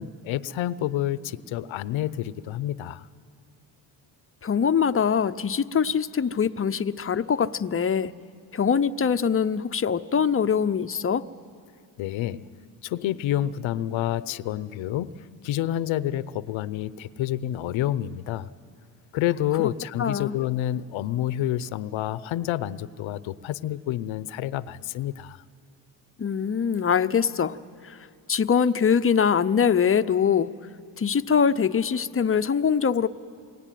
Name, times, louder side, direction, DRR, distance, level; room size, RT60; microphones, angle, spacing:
voice 1, 0.0-3.1 12.0-12.5 12.8-18.5 19.1-25.4, left 12 dB, 75° left, 16 dB, 0.8 m, -29 dB
voice 2, 4.4-8.1 8.5-11.3 19.6-19.7 20.0-20.4 26.2-27.6 27.8-30.5 31.0-33.1, left 7 dB, 30° left, 12 dB, 0.7 m, -23 dB
28.5 x 22.5 x 9.2 m, 2.4 s
cardioid pair, 90°, 47 cm